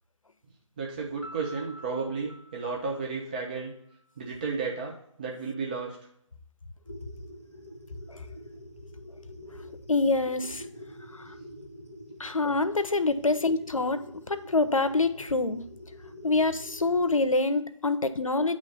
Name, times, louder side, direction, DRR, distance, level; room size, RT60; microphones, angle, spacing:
voice 1, 0.8-3.7 4.2-6.0, right 4 dB, 15° right, -1 dB, 0.5 m, -33 dB
Piano, 1.2-4.0, equal, 35° left, 0.5 m, -49 dB
sound 1, 6.8-17.3, equal, 60° right, 1.7 m, -46 dB
voice 2, 9.9-10.7 11.1-11.3 12.2-15.6 16.2-18.6, left 3 dB, 80° left, 11 dB, 0.6 m, -26 dB
8.9 x 3.1 x 5.4 m, 0.71 s
figure-of-eight pair, 150°, 17 cm